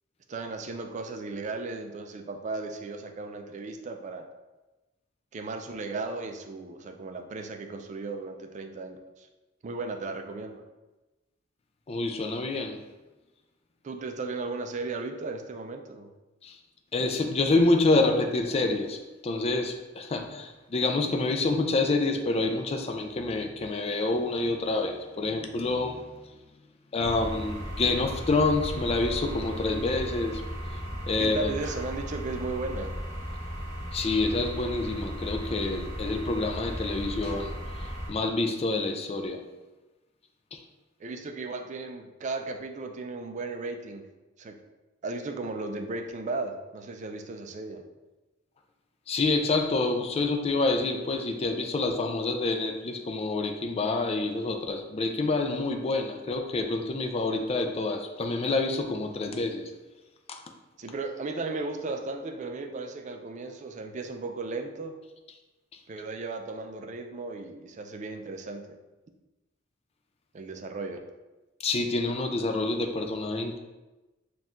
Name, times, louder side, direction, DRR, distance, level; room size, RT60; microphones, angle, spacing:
voice 1, 0.3-4.3 5.3-9.3 9.6-10.6 13.8-16.1 31.2-32.9 41.0-44.1 44.4-44.6 45.0-47.8 60.8-64.9 65.9-68.8 70.3-71.0, right 3 dB, 40° right, 6 dB, 0.4 m, -36 dB
voice 2, 11.9-12.8 16.4-16.6 16.9-19.0 19.2-26.2 26.9-30.4 31.1-31.5 33.9-37.5 38.1-39.4 40.5-40.6 49.1-59.7 60.3-60.4 71.6-73.6, left 3 dB, 30° left, 4 dB, 0.4 m, -27 dB
sound 1, 27.0-38.1, equal, 15° right, 1.1 m, -36 dB
4.3 x 2.4 x 3.6 m, 1.1 s
head